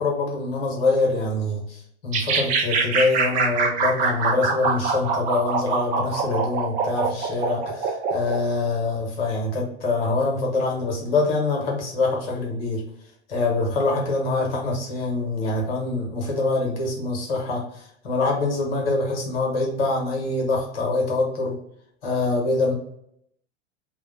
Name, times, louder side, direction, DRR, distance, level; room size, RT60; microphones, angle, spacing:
voice 1, 0.0-12.8 13.3-21.6 22.0-22.7, left 3 dB, 55° left, -1 dB, 1.2 m, -25 dB
sound 1, 2.1-8.4, right 4 dB, 25° right, 0.4 m, -24 dB
2.7 x 2.0 x 3.8 m, 0.72 s
figure-of-eight pair, 95°, 34 cm